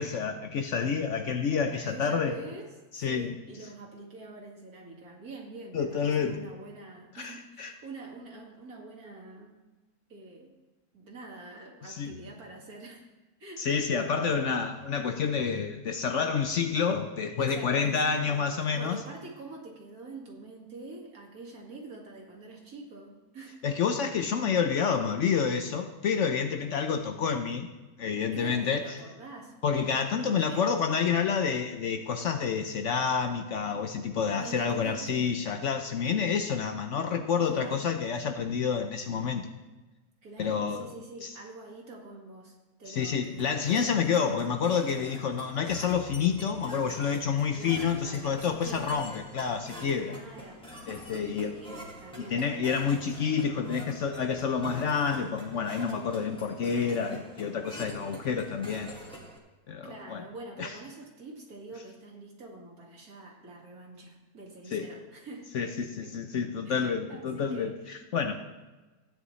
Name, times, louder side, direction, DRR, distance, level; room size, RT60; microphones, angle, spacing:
voice 1, 0.0-2.3 2.9-3.3 5.7-6.4 7.2-7.7 11.8-12.1 13.6-19.0 23.6-27.7 28.0-29.0 29.6-39.5 40.4-40.9 41.2-41.3 42.9-50.1 50.9-51.6 52.3-58.9 59.7-60.2 60.6-60.7 64.7-64.9 65.5-68.3, left 6 dB, 60° left, 6 dB, 0.9 m, -29 dB
voice 2, 1.7-9.6 10.1-10.5 10.9-13.0 13.4-13.7 14.0-14.5 17.3-23.6 28.2-29.5 30.2-30.8 34.3-35.3 37.5-37.9 40.2-43.5 43.8-44.2 47.5-49.1 50.0-50.7 51.1-52.4 57.8-58.2 59.8-66.1 66.7-67.9, right 2 dB, 65° right, -1 dB, 2.5 m, -45 dB
sound 1, 43.4-59.4, left 1 dB, 5° left, 1.7 m, -46 dB
15.5 x 9.5 x 3.2 m, 1.2 s
omnidirectional pair, 1.6 m